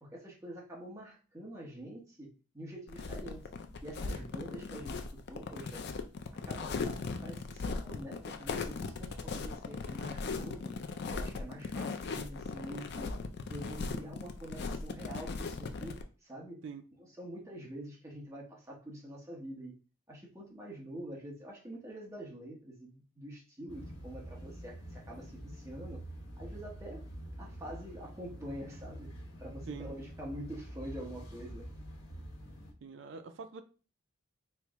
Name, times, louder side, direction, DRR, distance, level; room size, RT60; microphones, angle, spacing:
voice 1, 0.0-3.5 3.8-5.8 6.5-10.7 11.1-13.1 13.5-16.6 17.2-19.8 20.1-26.0 26.4-27.1 27.4-29.1 29.4-31.7, equal, 15° right, 0.9 m, -46 dB
sound 1, 2.9-16.0, left 4 dB, 50° left, 0.4 m, -38 dB
sound 2, 23.7-32.7, right 1 dB, 70° left, 1.2 m, -46 dB
voice 2, 29.7-30.0 32.8-33.6, right 5 dB, 60° right, 0.4 m, -44 dB
4.4 x 2.0 x 3.5 m
head